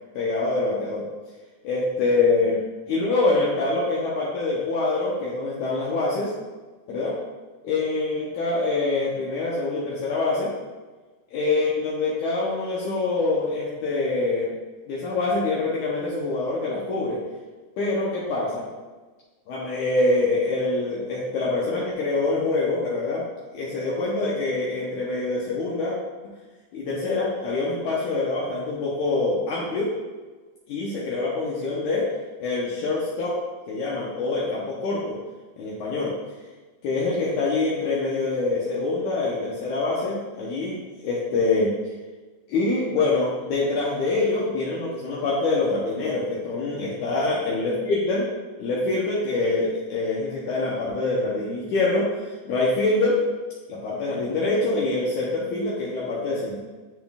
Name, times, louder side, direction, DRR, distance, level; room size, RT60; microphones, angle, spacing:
voice 1, 0.1-1.0 1.6-2.6 2.9-6.3 6.9-7.1 7.6-10.5 11.3-14.5 14.9-17.2 17.8-18.7 19.5-23.2 23.5-25.9 26.7-29.9 30.7-32.1 32.4-33.3 33.7-35.2 35.6-36.1 36.8-41.7 42.5-48.3 48.6-52.1 52.5-53.2 53.7-56.6, left 3 dB, 70° left, -6 dB, 2.2 m, -25 dB
11.0 x 3.8 x 2.3 m, 1.3 s
omnidirectional pair, 3.9 m